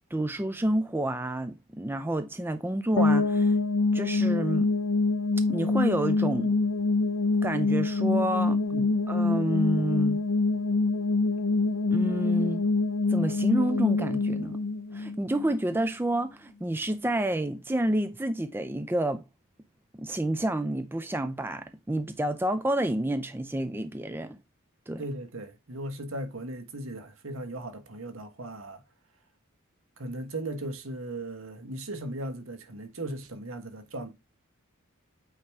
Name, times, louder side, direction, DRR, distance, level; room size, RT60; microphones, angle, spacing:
voice 1, 0.1-3.5 3.9-4.7 5.5-6.6 7.4-8.6 9.1-10.2 11.9-12.6 13.1-14.6 14.9-19.2 19.9-24.4 24.9-25.0, right 1 dB, 10° right, 0.4 m, -29 dB
sound 1, 3.0-15.8, left 3 dB, 70° left, 0.6 m, -25 dB
voice 2, 25.0-28.8 30.0-34.1, right 1 dB, 65° right, 1.3 m, -37 dB
8.6 x 2.9 x 4.6 m
head